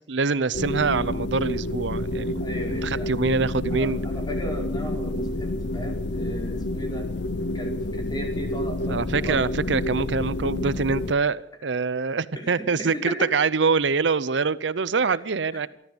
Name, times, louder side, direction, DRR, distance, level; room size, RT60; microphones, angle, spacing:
voice 1, 0.1-2.4 2.8-4.0 8.9-15.7, right 4 dB, 75° right, 18 dB, 0.7 m, -24 dB
sound 1, 0.5-11.1, left 1 dB, 65° left, 0.8 m, -29 dB
voice 2, 2.4-3.1 3.7-7.1 7.5-9.4 12.3-13.4 15.5-15.7, equal, 20° left, 2 dB, 4.7 m, -36 dB
26.0 x 13.0 x 8.0 m, 0.79 s
head